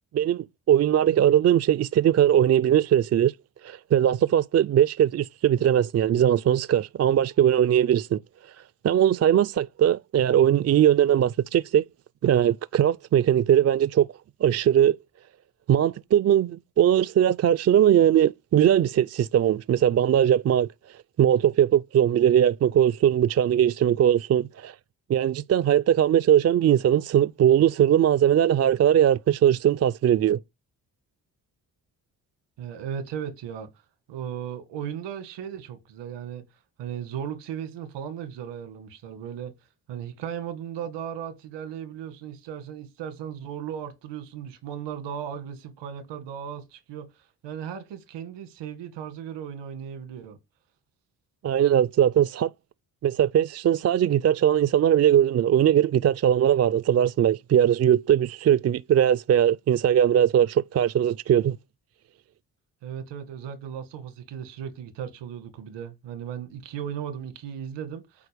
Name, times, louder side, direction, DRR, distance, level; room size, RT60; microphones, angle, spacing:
voice 1, 0.1-3.3 3.6-8.2 8.8-11.8 12.2-14.1 14.4-15.0 15.7-20.7 21.2-24.7 25.1-30.4 51.4-52.5 53.0-61.6, right 10 dB, 40° right, 0.4 m, -20 dB
voice 2, 32.6-33.7 34.1-36.4 36.8-39.5 39.9-50.4 62.8-68.3, right 8 dB, 90° right, 1.7 m, -36 dB
8.4 x 4.5 x 5.1 m
supercardioid pair, 50°, 41 cm